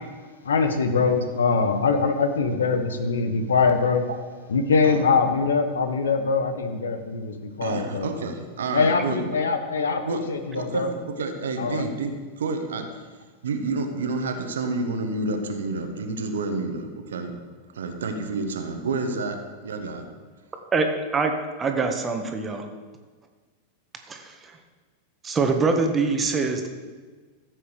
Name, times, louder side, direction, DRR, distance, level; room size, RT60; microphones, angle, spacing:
voice 1, 0.4-4.0 4.5-8.1 8.7-10.9 11.6-11.8, left 4 dB, 70° left, 7 dB, 1.2 m, -23 dB
voice 2, 7.6-9.4 10.0-10.2 10.5-13.0 13.4-17.4 17.7-20.1, right 3 dB, 65° right, 6 dB, 1.4 m, -29 dB
voice 3, 21.6-22.6 24.1-24.3 25.2-26.7, right 4 dB, 20° right, 4 dB, 1.6 m, -23 dB
14.5 x 7.8 x 5.0 m, 1.4 s
figure-of-eight pair, 90°, 0 cm